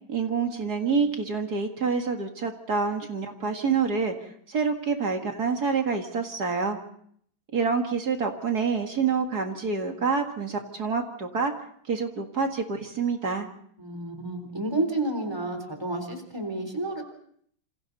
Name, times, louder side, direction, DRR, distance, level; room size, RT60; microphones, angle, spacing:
voice 1, 0.1-6.8 7.5-11.5 11.9-13.5, right 5 dB, 50° right, 4 dB, 2.4 m, -27 dB
voice 2, 13.8-17.0, right 2 dB, 10° right, 5 dB, 3.9 m, -30 dB
27.5 x 27.5 x 4.1 m, 0.64 s
omnidirectional pair, 2.2 m